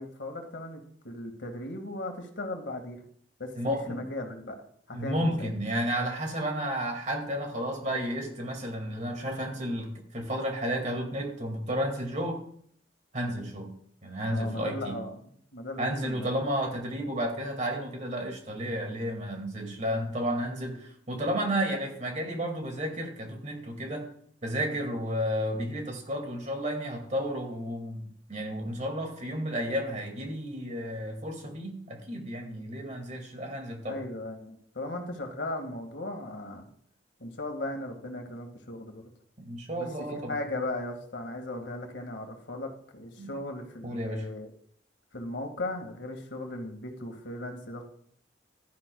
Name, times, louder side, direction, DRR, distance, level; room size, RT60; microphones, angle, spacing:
voice 1, 0.0-3.0 3.4-4.6 4.9-5.5 14.3-16.3 33.9-36.7 37.2-39.1 39.8-44.5 45.1-47.8, left 2 dB, 80° left, 3 dB, 1.8 m, -37 dB
voice 2, 3.6-4.0 4.9-12.4 13.1-13.7 14.0-15.0 15.8-24.1 24.4-34.0 39.5-40.4 43.2-43.3 43.8-44.3, equal, 40° right, 3 dB, 2.1 m, -32 dB
15.0 x 11.5 x 2.3 m, 0.63 s
head